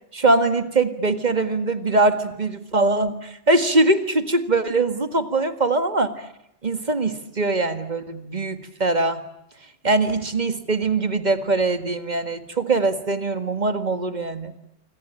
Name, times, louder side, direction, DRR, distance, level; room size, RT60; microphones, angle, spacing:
voice 1, 0.1-6.3 6.6-9.2 9.8-14.5, right 2 dB, 40° right, 10 dB, 1.9 m, -22 dB
26.5 x 25.0 x 8.8 m, 0.81 s
omnidirectional pair, 1.2 m